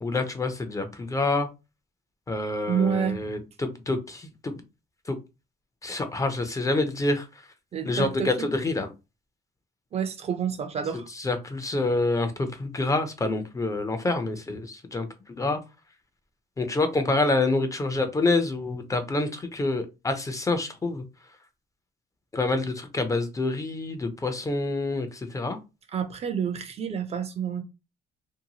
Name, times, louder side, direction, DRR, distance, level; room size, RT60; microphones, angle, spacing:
voice 1, 0.0-1.5 2.3-4.5 5.1-5.2 5.8-7.3 7.9-8.9 11.2-15.6 16.6-21.0 22.3-25.6, left 2 dB, 20° left, 0.5 m, -27 dB
voice 2, 2.7-3.2 7.7-8.5 9.9-11.1 25.9-27.6, right 7 dB, 40° right, 0.5 m, -28 dB
2.7 x 2.2 x 2.8 m
cardioid pair, 110°, 17 cm